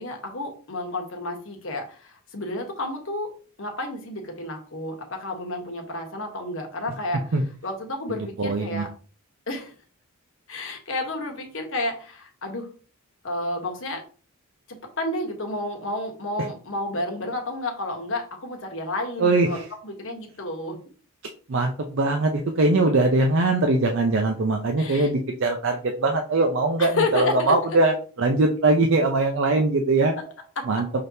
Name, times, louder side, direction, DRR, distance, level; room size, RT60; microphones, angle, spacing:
voice 1, 0.0-7.3 7.6-8.9 9.5-9.7 10.5-12.7 13.2-14.0 15.0-20.8 24.8-25.1 26.8-27.6 30.2-30.3 30.6-30.8, left 2 dB, 60° left, 3 dB, 1.1 m, -31 dB
voice 2, 8.1-8.9 19.2-19.7 21.5-30.1 30.7-30.9, right 2 dB, 55° right, 3 dB, 0.5 m, -21 dB
5.8 x 3.3 x 2.7 m, 0.40 s
head